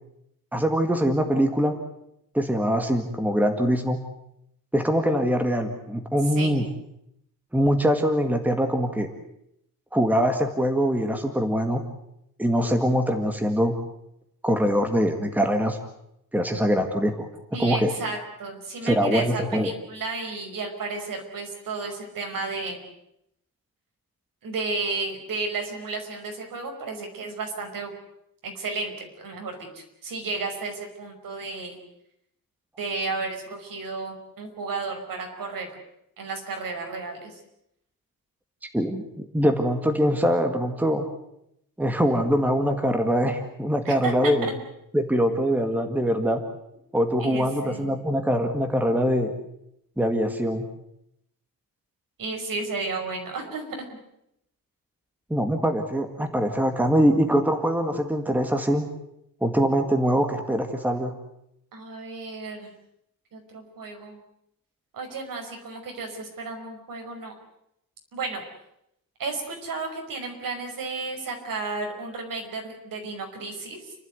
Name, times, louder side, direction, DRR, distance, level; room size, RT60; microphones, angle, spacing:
voice 1, 0.5-1.8 2.3-4.0 4.7-6.6 7.5-9.1 9.9-11.8 12.4-13.8 14.4-15.8 16.3-17.3 17.6-17.9 18.8-19.7 38.7-41.1 41.8-44.5 44.9-46.4 46.9-49.3 50.0-50.7 55.3-58.9 59.4-61.1, equal, 5° right, 5 dB, 1.9 m, -23 dB
voice 2, 17.5-22.8 24.4-27.9 28.4-31.8 32.8-35.7 36.2-37.4 43.8-44.5 47.2-48.0 52.2-53.8 61.7-62.7 63.3-64.2 64.9-67.3 68.1-68.4 69.2-73.9, right 3 dB, 70° right, 4 dB, 5.5 m, -33 dB
30.0 x 12.5 x 9.6 m, 0.79 s
wide cardioid pair, 165°, 35 cm